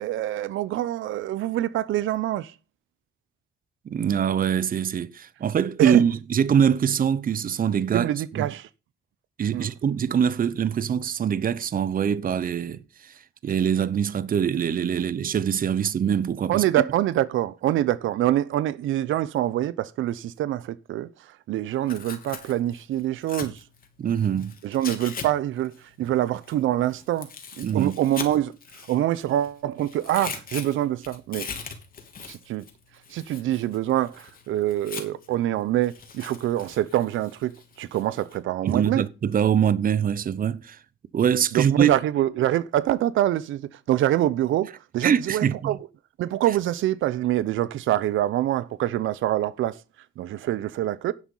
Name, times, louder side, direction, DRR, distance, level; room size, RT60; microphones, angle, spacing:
voice 1, 0.0-2.5 5.8-6.0 7.9-8.7 9.5-9.7 16.5-23.6 24.6-27.3 27.6-28.5 28.9-31.5 32.2-32.6 33.1-39.0 41.5-45.8 46.2-49.8 50.2-51.1, right 13 dB, 80° right, 0.8 m, -25 dB
voice 2, 3.9-8.1 8.3-8.5 9.4-13.1 13.4-16.6 24.0-24.5 27.6-27.9 38.6-40.8 41.1-41.9 45.0-45.7, right 8 dB, 45° right, 0.8 m, -23 dB
Tearing, 21.7-25.3 25.6-29.5 29.8-35.3 35.8-38.4, left 5 dB, 45° left, 3.0 m, -40 dB
11.0 x 7.6 x 5.5 m
cardioid pair, 90°, 20 cm